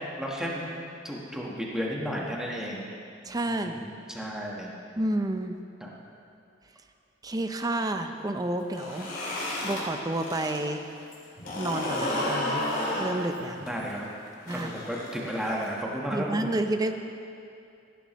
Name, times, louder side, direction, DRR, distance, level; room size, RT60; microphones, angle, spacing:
voice 1, 0.2-0.7 1.0-2.9 3.5-4.7 5.8-5.9 13.6-14.1 14.5-16.5, equal, 5° right, -3 dB, 1.4 m, -33 dB
voice 2, 3.2-3.8 5.0-5.6 7.2-10.9 11.6-12.7 13.0-13.7 14.5-14.7 16.1-16.9, right 1 dB, 20° right, 6 dB, 0.6 m, -30 dB
sound 1, 8.6-10.6 10.9-15.7, left 1 dB, 50° left, 3.1 m, -32 dB
16.0 x 11.5 x 3.1 m, 2.5 s
head